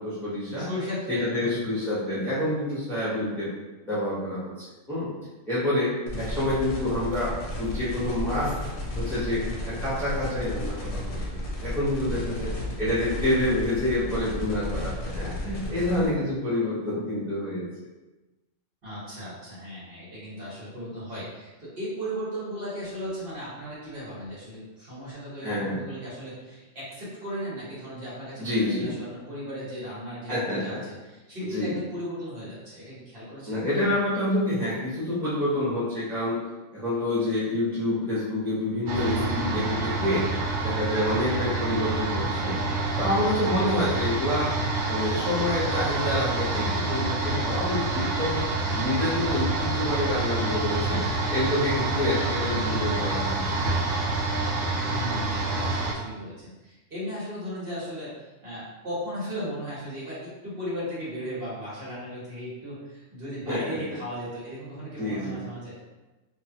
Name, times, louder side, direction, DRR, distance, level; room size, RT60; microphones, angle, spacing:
voice 1, 0.0-0.7 1.1-3.5 3.8-5.1 5.5-8.5 9.0-11.2 11.6-12.5 12.8-17.7 25.4-25.8 28.4-28.9 30.3-30.8 31.5-31.8 33.5-36.4 36.7-42.6 43.0-44.5 44.9-48.4 48.7-53.6 63.5-63.8 65.0-65.4, left 1 dB, ahead, -10 dB, 0.8 m, -27 dB
voice 2, 0.6-1.7 6.1-6.2 12.2-12.3 18.8-33.9 54.8-65.7, equal, 50° right, -9 dB, 1.3 m, -36 dB
sound 1, 6.1-16.1, left 1 dB, 55° left, 0.8 m, -33 dB
sound 2, 38.9-55.9, right 2 dB, 80° right, 1.0 m, -27 dB
3.0 x 2.5 x 2.8 m, 1.1 s
omnidirectional pair, 1.3 m